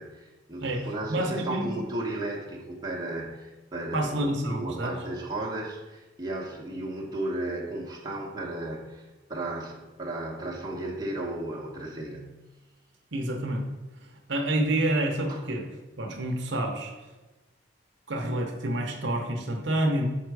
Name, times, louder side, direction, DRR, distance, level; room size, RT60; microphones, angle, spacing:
voice 1, 0.0-12.4 15.3-15.4, right 1 dB, 20° right, -4 dB, 1.0 m, -34 dB
voice 2, 0.6-1.8 3.9-4.9 13.1-13.6 14.3-15.7 16.0-16.9 18.1-20.1, right 1 dB, 60° right, 1 dB, 0.8 m, -28 dB
5.8 x 4.5 x 4.7 m, 1.2 s
head